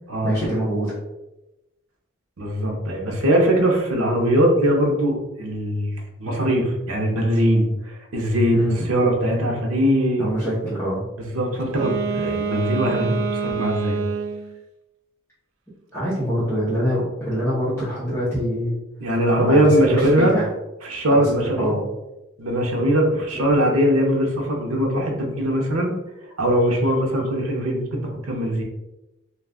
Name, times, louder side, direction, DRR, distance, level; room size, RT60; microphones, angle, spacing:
voice 1, 0.2-0.9 8.5-8.8 10.2-11.0 15.9-18.7 19.4-20.5 21.2-21.3 21.6-21.8, equal, 10° left, -11 dB, 0.8 m, -24 dB
voice 2, 2.4-8.6 8.9-10.3 11.3-14.0 19.0-20.4 20.8-21.7 22.4-25.9 26.4-28.6, equal, 85° right, 1 dB, 0.7 m, -21 dB
Wind instrument woodwind instrument, 11.6-14.5, right 5 dB, 60° right, 0.3 m, -26 dB
2.4 x 2.3 x 3.5 m, 0.97 s
head